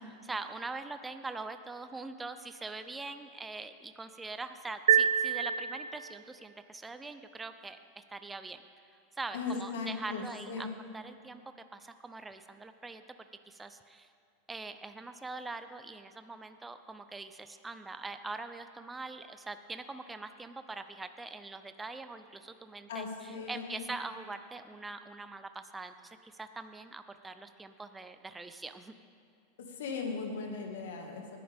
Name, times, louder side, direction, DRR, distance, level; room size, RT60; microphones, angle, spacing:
voice 1, 0.2-8.6 9.2-10.7 10.9-11.4 11.7-13.0 13.5-14.1 14.5-28.9, right 3 dB, 15° right, 9 dB, 0.7 m, -43 dB
sound 1, 4.9-6.3, right 9 dB, 80° right, 0.3 m, -27 dB
voice 2, 9.3-10.7 22.9-23.9 29.6-31.4, left 4 dB, 75° left, 2 dB, 2.0 m, -38 dB
19.5 x 10.5 x 3.6 m, 2.5 s
hypercardioid pair, 100°, 0 cm